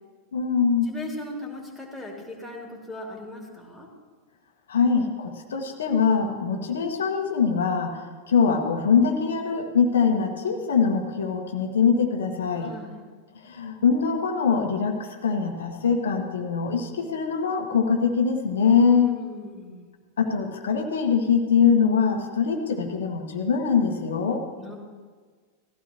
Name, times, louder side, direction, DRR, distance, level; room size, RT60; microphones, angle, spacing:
voice 1, 0.3-0.9 4.7-8.0 8.3-12.7 13.4-19.2 20.2-24.4, left 6 dB, 65° left, 3 dB, 1.5 m, -23 dB
voice 2, 0.9-3.9 12.6-13.0 18.8-19.8 24.6-24.8, left 1 dB, 5° right, -1 dB, 3.0 m, -39 dB
19.0 x 15.0 x 3.1 m, 1.5 s
figure-of-eight pair, 90°, 0 cm